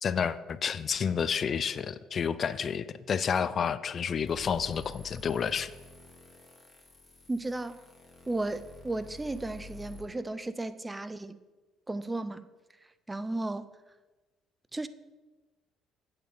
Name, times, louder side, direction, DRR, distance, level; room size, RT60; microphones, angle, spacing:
voice 1, 0.0-5.7, left 7 dB, 45° left, 0.4 m, -30 dB
sound 1, 4.3-10.0, left 2 dB, 30° left, 2.3 m, -50 dB
voice 2, 7.3-7.8 8.3-11.4 11.9-12.5 13.1-13.7 14.7-14.9, right 2 dB, 20° right, 0.6 m, -34 dB
8.7 x 8.2 x 4.3 m
hypercardioid pair, 55°, 0 cm